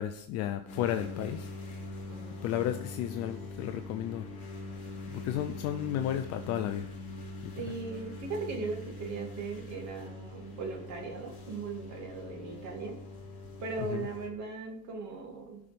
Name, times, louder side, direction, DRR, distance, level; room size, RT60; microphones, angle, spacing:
voice 1, 0.0-1.5 2.4-4.3 5.1-6.9 7.4-7.5 13.8-14.1, left 11 dB, 35° left, 8 dB, 0.5 m, -33 dB
sound 1, 0.7-14.3, left 2 dB, 15° left, 3.2 m, -43 dB
voice 2, 2.1-2.5 7.6-13.0 13.6-15.6, right 4 dB, 35° right, 2 dB, 2.4 m, -38 dB
17.5 x 5.9 x 3.4 m, 0.68 s
supercardioid pair, 130°, 49 cm